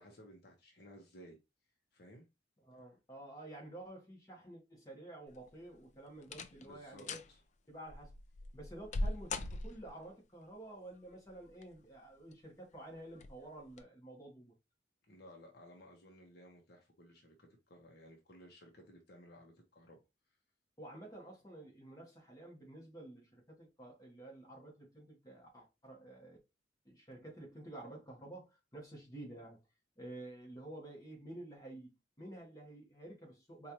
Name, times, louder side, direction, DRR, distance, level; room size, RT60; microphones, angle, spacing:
voice 1, 0.0-1.4 1.9-2.2 6.5-7.4 15.1-20.0, equal, 60° left, 0.9 m, -57 dB
voice 2, 2.6-7.2 7.7-8.1 8.5-14.5 20.8-26.4 26.8-29.6 30.0-33.7, right 1 dB, 20° left, 1.2 m, -51 dB
sound 1, 5.3-5.7 6.2-6.7 7.0-7.3 7.9-10.1 11.3-11.9 12.3-12.4 13.1-13.4 13.7-13.8, left 2 dB, 40° left, 0.4 m, -40 dB
4.2 x 2.5 x 2.9 m
head